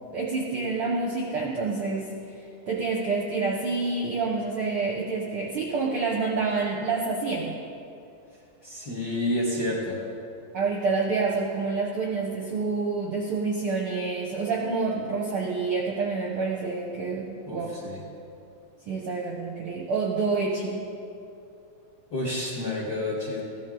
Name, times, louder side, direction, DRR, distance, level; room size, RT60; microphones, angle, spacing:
voice 1, 0.1-2.1 2.4-7.6 10.5-17.7 18.9-20.9, right 4 dB, 65° right, -2 dB, 1.4 m, -28 dB
voice 2, 8.6-10.0 17.5-18.0 22.1-23.4, left 1 dB, 40° left, -5 dB, 1.6 m, -29 dB
15.5 x 12.5 x 3.8 m, 2.6 s
omnidirectional pair, 3.8 m